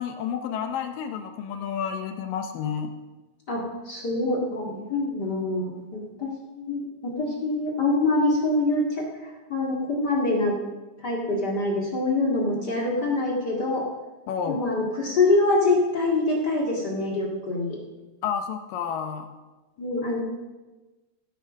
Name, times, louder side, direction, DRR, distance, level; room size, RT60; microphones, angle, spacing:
voice 1, 0.0-2.9 14.3-14.7 18.2-19.3, left 7 dB, 75° left, 6 dB, 2.1 m, -30 dB
voice 2, 3.5-10.6 11.0-13.9 14.5-17.8 19.8-20.2, left 2 dB, 40° left, -2 dB, 1.7 m, -25 dB
16.0 x 8.4 x 6.2 m, 1.2 s
omnidirectional pair, 4.7 m